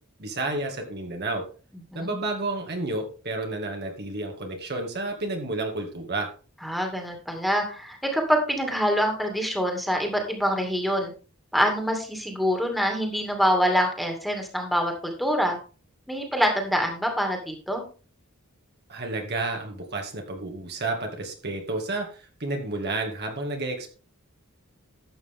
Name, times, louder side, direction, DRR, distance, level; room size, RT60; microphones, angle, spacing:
voice 1, 0.2-1.4 1.9-6.3 18.9-23.9, right 2 dB, 50° right, 2 dB, 2.2 m, -31 dB
voice 2, 6.6-11.1 11.5-15.6 16.1-17.8, equal, ahead, 2 dB, 2.4 m, -25 dB
12.5 x 8.1 x 3.7 m, 0.37 s
head